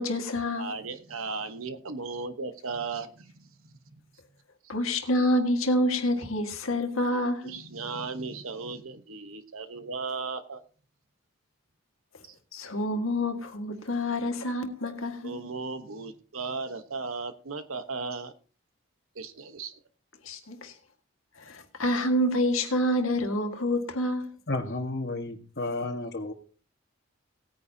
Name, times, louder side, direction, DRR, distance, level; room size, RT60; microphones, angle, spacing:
voice 1, 0.0-0.7 4.7-7.6 12.5-15.4 20.2-20.7 21.4-24.3, left 1 dB, 80° left, 1.8 m, -27 dB
voice 2, 0.6-4.0 7.4-10.6 12.3-12.4 15.2-18.3 19.1-19.7, right 4 dB, 85° right, 1.1 m, -36 dB
voice 3, 24.5-26.3, left 2 dB, 50° left, 1.5 m, -32 dB
18.5 x 9.5 x 2.8 m
head